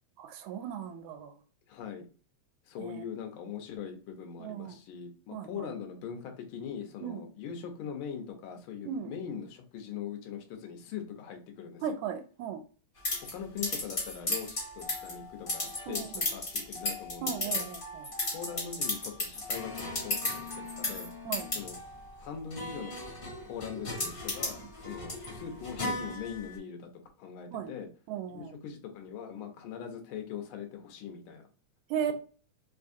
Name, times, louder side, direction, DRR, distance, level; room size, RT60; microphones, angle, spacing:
voice 1, 0.2-1.3 2.8-3.0 4.4-4.8 5.3-5.7 7.0-7.3 8.8-9.1 11.8-12.6 15.9-16.3 17.2-18.1 21.2-21.5 24.6-24.7 27.5-27.7 28.1-28.6 31.9-32.1, right 8 dB, 80° right, 8 dB, 1.8 m, -36 dB
voice 2, 1.7-2.1 2.7-11.8 13.3-16.0 16.3-17.6 18.3-21.1 21.5-21.8 22.2-22.9 23.4-26.9 27.2-27.9 28.3-31.4, left 7 dB, 80° left, 4 dB, 1.2 m, -41 dB
sound 1, 13.0-26.6, left 2 dB, 55° left, 0.5 m, -35 dB
4.5 x 2.5 x 2.6 m, 0.38 s
omnidirectional pair, 3.4 m